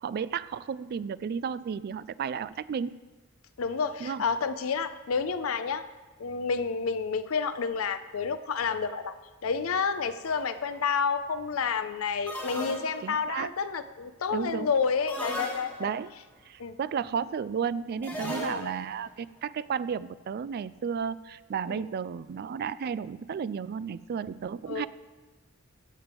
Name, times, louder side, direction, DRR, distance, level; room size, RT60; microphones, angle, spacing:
voice 1, 0.0-3.0 4.0-4.2 13.0-13.5 14.3-14.7 15.8-16.1 16.5-24.9, right 7 dB, 50° right, 17 dB, 0.3 m, -33 dB
voice 2, 3.6-5.9 6.2-9.1 9.4-15.9 16.6-16.8 18.2-18.7 21.7-21.8 24.7-24.9, left 5 dB, 85° left, 11 dB, 0.5 m, -30 dB
sound 1, 10.2-10.6 12.3-13.3 15.1-16.1 18.0-18.9, equal, 10° left, 2.0 m, -37 dB
16.5 x 7.5 x 3.5 m, 1.2 s
head